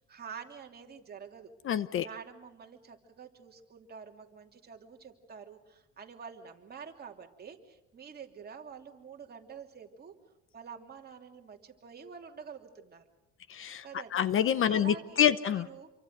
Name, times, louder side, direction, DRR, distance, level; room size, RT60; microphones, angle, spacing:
voice 1, 0.0-1.5 2.0-10.1 10.5-13.0 13.8-14.3 14.7-15.9, right 6 dB, 30° right, 3 dB, 2.9 m, -47 dB
voice 2, 1.6-2.1 13.5-13.8 14.1-15.7, left 9 dB, 45° left, 15 dB, 0.8 m, -27 dB
28.0 x 24.0 x 6.6 m, 0.92 s
cardioid pair, 130°, 30 cm